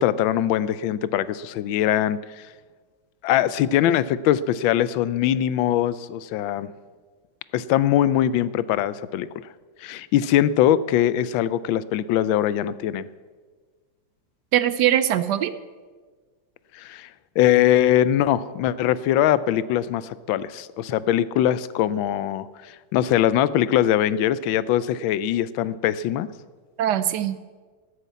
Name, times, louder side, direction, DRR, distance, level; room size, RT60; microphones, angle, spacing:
voice 1, 0.0-2.2 3.2-6.7 7.5-9.3 9.8-13.0 16.7-17.1 17.4-22.5 22.9-26.3, left 11 dB, 85° left, 17 dB, 1.3 m, -22 dB
voice 2, 14.5-15.5 26.8-27.4, right 11 dB, 75° right, 13 dB, 1.1 m, -21 dB
13.5 x 8.3 x 8.3 m, 1.4 s
omnidirectional pair, 2.1 m